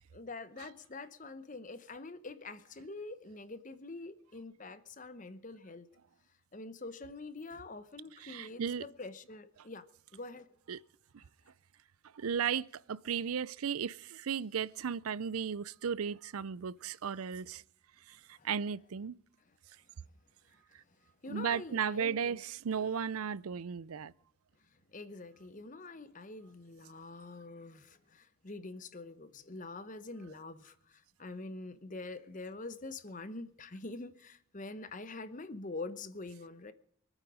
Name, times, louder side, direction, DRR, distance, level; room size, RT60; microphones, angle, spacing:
voice 1, 0.1-5.9 6.5-9.8 10.1-10.8 18.3-18.5 21.2-22.4 24.9-36.7, left 3 dB, 35° left, 0.9 m, -45 dB
voice 2, 8.2-8.8 10.7-10.8 11.1-11.2 12.1-17.6 18.1-19.2 21.3-24.1, right 7 dB, 90° right, 0.5 m, -35 dB
24.0 x 9.0 x 5.0 m
head